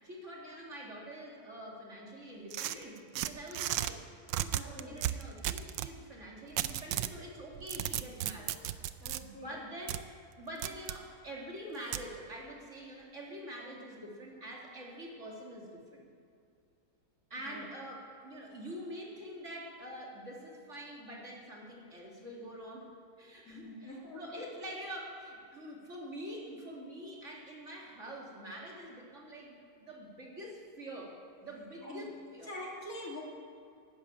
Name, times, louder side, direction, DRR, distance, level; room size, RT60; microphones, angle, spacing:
voice 1, 0.0-4.0 4.4-8.6 9.2-10.0 10.4-16.1 17.3-22.9 23.2-32.5, equal, 45° right, -2 dB, 2.5 m, -46 dB
sound 1, 2.5-3.9 4.3-5.9 6.6-7.2 7.5-9.2 9.9-10.0 10.6-11.0 11.9-12.1, right 13 dB, 85° right, 1.2 m, -34 dB
voice 2, 4.5-5.0 9.0-9.6 17.4-17.6 23.4-24.2 31.8-32.1 32.5-33.2, left 1 dB, 50° left, -3 dB, 3.1 m, -45 dB
12.5 x 10.5 x 8.5 m, 2.4 s
omnidirectional pair, 1.9 m